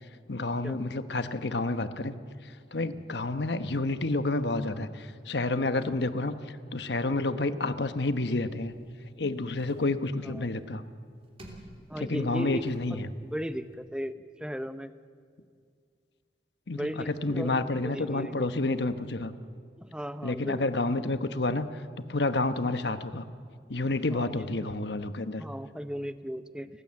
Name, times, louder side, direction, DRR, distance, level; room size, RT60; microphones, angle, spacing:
voice 1, 0.3-2.1 2.7-6.4 6.7-8.7 9.2-10.8 12.0-13.1 16.7-19.3 20.2-21.7 22.0-23.3 23.7-25.4, left 2 dB, 75° left, 11 dB, 1.1 m, -29 dB
sound 1, 8.5-13.8, right 1 dB, 35° right, 3.2 m, -54 dB
voice 2, 11.9-12.6 12.9-14.9 16.7-18.5 19.8-20.6 24.1-24.3 25.4-26.8, equal, 5° right, 11 dB, 0.7 m, -37 dB
30.0 x 15.5 x 7.6 m, 2.1 s
head